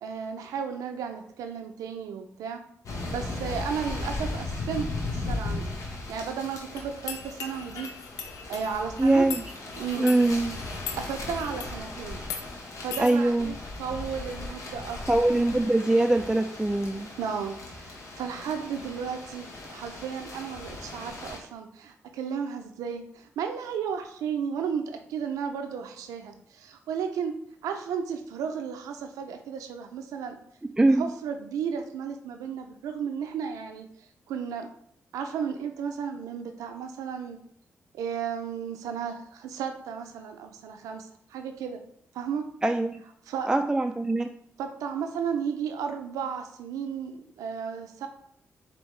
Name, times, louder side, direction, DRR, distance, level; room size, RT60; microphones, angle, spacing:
voice 1, 0.0-2.6 3.1-7.9 8.5-9.3 9.8-10.2 10.7-12.2 12.8-15.0 17.2-27.3 27.6-30.4 31.0-33.9 34.3-34.7 35.1-37.4 37.9-41.8 42.1-42.4 43.3-43.6 44.6-48.1, right 7 dB, 85° right, 6 dB, 0.4 m, -34 dB
sound 1, 2.8-21.4, left 2 dB, 65° left, 1.0 m, -37 dB
sound 2, 6.8-11.8 12.2-12.4 12.9-13.1, left 7 dB, 90° left, 0.4 m, -40 dB
voice 2, 9.0-9.4 10.0-10.6 13.0-13.5 15.1-17.1 30.8-31.1 42.6-43.0 43.5-44.3, right 2 dB, 15° right, 5 dB, 0.3 m, -23 dB
4.4 x 2.8 x 3.1 m, 0.66 s
supercardioid pair, 45°, 6 cm